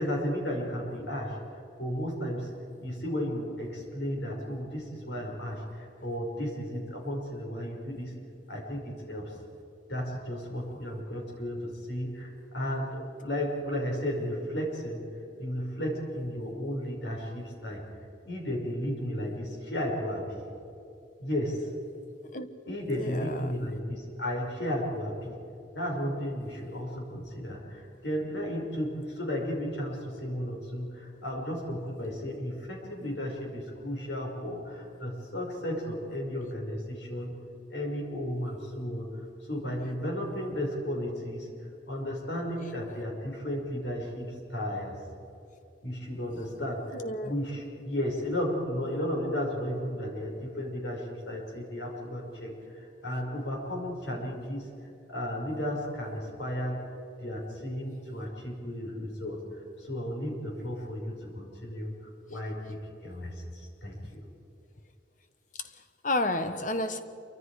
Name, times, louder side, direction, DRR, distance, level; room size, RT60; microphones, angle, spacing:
voice 1, 0.0-2.5 2.8-8.1 8.5-9.4 9.9-15.0 15.4-17.8 18.2-20.4 21.2-21.7 22.7-25.4 25.7-37.3 37.7-41.5 41.9-44.9 45.8-54.7 55.1-56.9 57.2-61.9 62.3-64.3, equal, 70° left, 5.8 m, -34 dB
voice 2, 22.9-23.6 46.9-47.3 65.6-67.0, left 2 dB, 40° left, 1.2 m, -31 dB
27.5 x 24.5 x 5.0 m
head